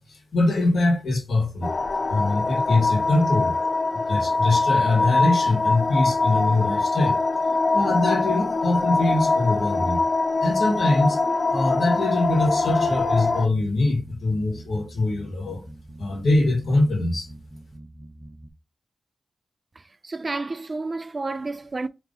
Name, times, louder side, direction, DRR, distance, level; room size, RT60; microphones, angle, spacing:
voice 1, 0.0-1.7 2.1-3.5 3.9-7.2 7.7-10.0 10.4-11.2 11.5-15.6 16.0-17.3, left 2 dB, 85° left, 1.4 m, -23 dB
sound 1, 1.6-13.5, left 3 dB, 50° left, 0.5 m, -23 dB
sound 2, 12.2-18.5, right 1 dB, 20° right, 0.7 m, -44 dB
voice 2, 20.0-21.9, right 3 dB, 45° right, 0.3 m, -30 dB
3.9 x 3.0 x 3.7 m
cardioid pair, 45°, 0 cm